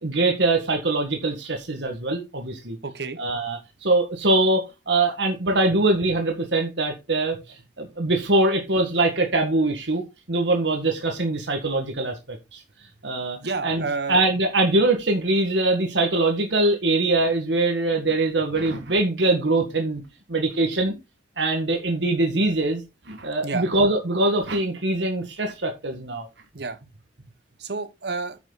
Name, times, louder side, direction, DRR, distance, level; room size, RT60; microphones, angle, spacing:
voice 1, 0.0-2.8 3.2-7.4 7.8-12.6 13.0-20.0 20.3-20.9 21.4-26.3, right 2 dB, 90° right, 1.8 m, -23 dB
voice 2, 2.8-3.2 13.4-14.2 23.4-23.7 26.5-26.8 27.6-28.4, right 4 dB, 65° right, 1.2 m, -29 dB
9.3 x 6.1 x 4.0 m
head